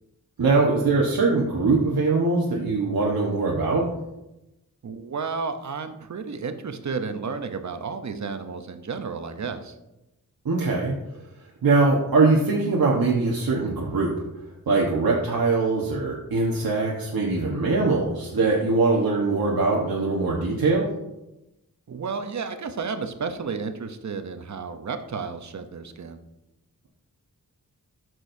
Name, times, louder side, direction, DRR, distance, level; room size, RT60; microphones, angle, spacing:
voice 1, 0.4-3.8 10.4-10.9 11.6-14.1 14.7-20.9, right 3 dB, 90° right, -3 dB, 1.3 m, -22 dB
voice 2, 4.8-9.8 21.9-26.2, right 5 dB, 55° right, 8 dB, 0.8 m, -32 dB
13.5 x 6.2 x 2.7 m, 0.93 s
wide cardioid pair, 125°, 35 cm